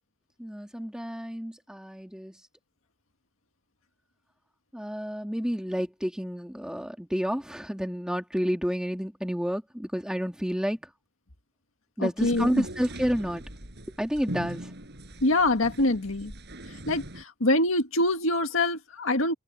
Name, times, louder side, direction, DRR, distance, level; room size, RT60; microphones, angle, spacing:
voice 1, 0.4-2.3 4.7-10.8 12.0-13.4 14.0-14.7, equal, 5° right, 2.8 m, -30 dB
voice 2, 12.0-12.7 15.2-16.3 16.9-19.3, left 2 dB, 80° left, 1.9 m, -25 dB
sound 1, 12.2-17.2, right 1 dB, 55° right, 6.2 m, -41 dB
head